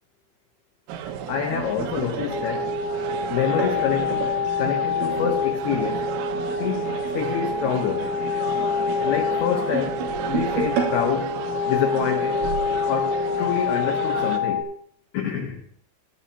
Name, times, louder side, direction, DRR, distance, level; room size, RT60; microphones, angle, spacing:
sound 1, 0.9-14.4, right 8 dB, 80° right, 3.6 m, -34 dB
voice 1, 1.3-2.7 3.3-4.3 4.6-6.2 6.6-8.2 9.0-11.4 11.6-12.4 12.8-14.7 15.1-15.6, left 8 dB, 90° left, 4 dB, 2.2 m, -27 dB
sound 2, 1.5-4.4 5.0-12.3 12.7-12.9 13.2-13.4 14.2-14.3, right 6 dB, 65° right, 5.0 m, -34 dB
sound 3, 2.3-14.6, left 5 dB, 65° left, 4.4 m, -26 dB
18.5 x 13.0 x 2.9 m, 0.62 s
omnidirectional pair, 6.0 m